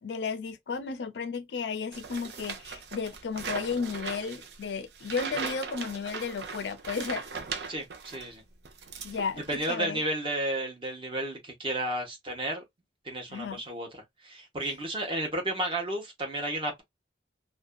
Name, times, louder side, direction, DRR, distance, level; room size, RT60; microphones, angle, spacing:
voice 1, 0.0-7.2 9.0-10.0 13.3-13.6 14.6-14.7, left 5 dB, 75° left, 0.4 m, -33 dB
sound 1, 1.9-8.3 8.6-9.6, right 5 dB, 70° right, 0.6 m, -39 dB
voice 2, 7.7-8.4 9.4-12.6 13.0-16.8, right 1 dB, 30° right, 0.8 m, -32 dB
2.5 x 2.2 x 2.3 m
head